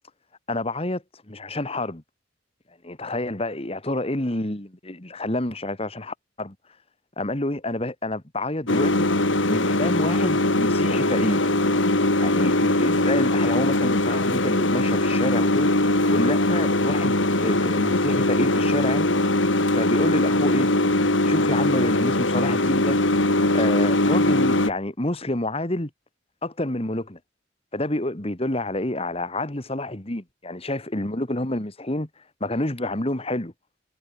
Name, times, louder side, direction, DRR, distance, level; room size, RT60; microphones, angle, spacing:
voice 1, 0.5-2.0 2.8-6.6 7.2-9.1 9.5-11.5 12.1-15.7 16.1-19.1 19.7-20.7 21.2-23.0 23.5-25.9 26.4-27.2 27.7-32.1 32.4-33.5, left 1 dB, 30° left, 1.9 m, -28 dB
sound 1, 8.7-24.7, left 1 dB, 70° left, 3.9 m, -21 dB
head